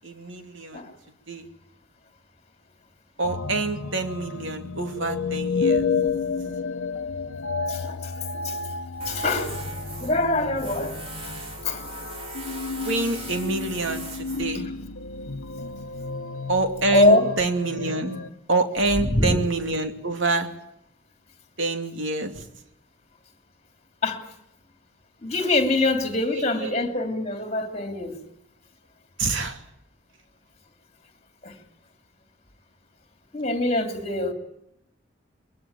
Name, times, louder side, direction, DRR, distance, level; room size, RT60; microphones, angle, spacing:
voice 1, 0.0-0.8 1.3-1.4 3.2-5.9 12.8-14.7 16.5-18.2 18.5-20.5 21.6-22.4 26.6-26.7 29.2-29.6, right 2 dB, 70° right, 5 dB, 2.7 m, -26 dB
sound 1, 3.2-18.3, left 4 dB, 85° left, 1.0 m, -31 dB
voice 2, 7.7-8.7 9.0-9.6 10.0-11.3 11.6-11.9 12.6-12.9 14.5-14.7 16.9-17.3 19.0-19.4 24.0-24.3 25.2-28.2 31.4-31.6 33.3-34.3, left 2 dB, 30° left, 5 dB, 3.1 m, -24 dB
Tools, 9.0-15.5, right 2 dB, 30° right, 4.1 m, -40 dB
22.5 x 21.5 x 9.1 m, 0.81 s
head